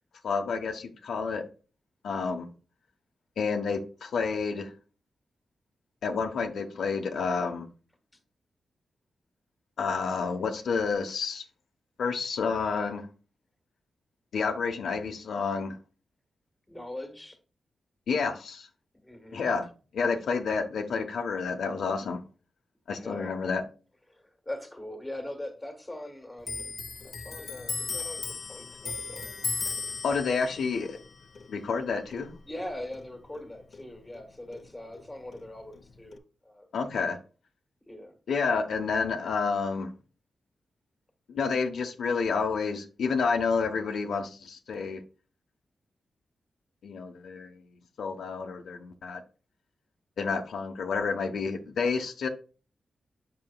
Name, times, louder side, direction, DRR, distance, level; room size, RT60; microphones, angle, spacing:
voice 1, 0.2-1.4 2.0-2.5 3.4-4.7 6.0-7.7 9.8-11.4 12.0-13.1 14.3-15.8 18.1-18.7 19.3-19.7 19.9-22.2 22.9-23.6 30.0-31.0 31.5-32.3 36.7-37.2 38.3-39.9 41.3-45.0 46.8-47.6 48.0-49.2 50.2-52.3, left 5 dB, 85° left, 1.0 m, -29 dB
voice 2, 2.1-2.5 16.7-17.4 19.0-19.4 22.9-23.4 24.1-26.7 27.0-29.4 29.7-29.8 32.4-36.7 37.9-38.2 38.7-38.8, left 1 dB, 10° left, 1.5 m, -41 dB
Clock, 26.4-33.5 33.7-35.1 35.3-36.2, left 4 dB, 55° left, 0.7 m, -37 dB
7.7 x 6.0 x 2.3 m
wide cardioid pair, 145°, 0 cm